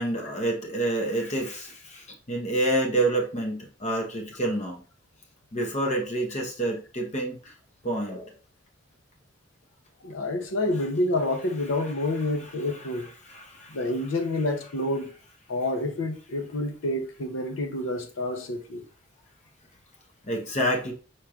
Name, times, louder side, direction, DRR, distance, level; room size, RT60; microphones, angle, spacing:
voice 1, 0.0-4.8 5.5-7.5 7.8-8.3 12.7-12.8 13.2-13.8 20.2-20.9, right 1 dB, 35° left, 1.0 m, -28 dB
voice 2, 10.0-13.1 13.7-15.1 15.5-18.9, left 1 dB, 80° left, 0.7 m, -28 dB
4.6 x 4.4 x 2.4 m
head